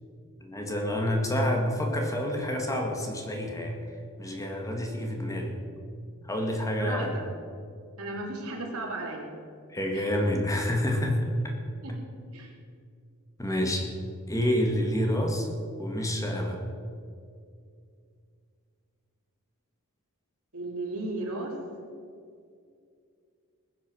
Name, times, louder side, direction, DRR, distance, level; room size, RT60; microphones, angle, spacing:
voice 1, 0.4-3.8 4.2-5.6 6.2-7.1 9.7-11.5 13.4-13.9 14.3-15.5 15.8-16.6, equal, 15° left, 1 dB, 1.8 m, -28 dB
voice 2, 8.0-9.2 9.9-10.1 11.8-11.9 12.3-12.5 20.5-21.5, right 2 dB, 75° right, -1 dB, 3.4 m, -35 dB
20.0 x 8.4 x 6.3 m, 2.3 s
head